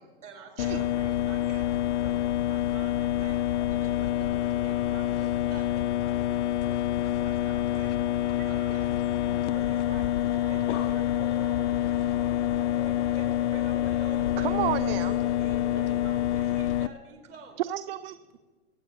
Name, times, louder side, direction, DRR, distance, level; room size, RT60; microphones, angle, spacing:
voice 1, 0.2-5.9 6.3-8.0 8.4-9.1 9.5-11.5 12.8-14.5 15.4-17.7, right 4 dB, 85° right, 2 dB, 3.7 m, -48 dB
sound 1, 0.6-16.9, left 13 dB, 75° left, 0.5 m, -27 dB
voice 2, 8.1-8.8 10.0-10.1 11.8-13.1, right 6 dB, 25° right, -1 dB, 2.7 m, -55 dB
sound 2, 8.4-16.5, left 4 dB, 50° left, 3.6 m, -43 dB
voice 3, 14.4-15.1 17.6-18.4, right 14 dB, 55° right, 13 dB, 0.5 m, -31 dB
23.0 x 9.7 x 2.7 m, 1.4 s
hypercardioid pair, 130°, 35 cm